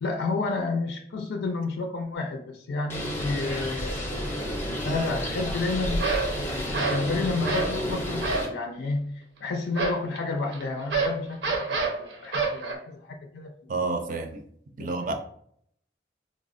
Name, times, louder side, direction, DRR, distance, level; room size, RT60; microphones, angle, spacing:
voice 1, 0.0-4.3 4.8-6.0 6.3-13.7 14.8-15.1, left 3 dB, 75° left, 3 dB, 0.4 m, -31 dB
Bird, 2.9-8.5, equal, 15° left, 0.5 m, -31 dB
sound 1, 4.2-4.4 6.0-6.4 6.7-7.1 7.4-7.8 8.2-8.6 9.8-12.8, right 3 dB, 85° right, 0.6 m, -27 dB
voice 2, 13.7-14.4 14.8-15.1, right 3 dB, 45° right, 5 dB, 0.4 m, -29 dB
4.2 x 2.0 x 2.4 m, 0.64 s
head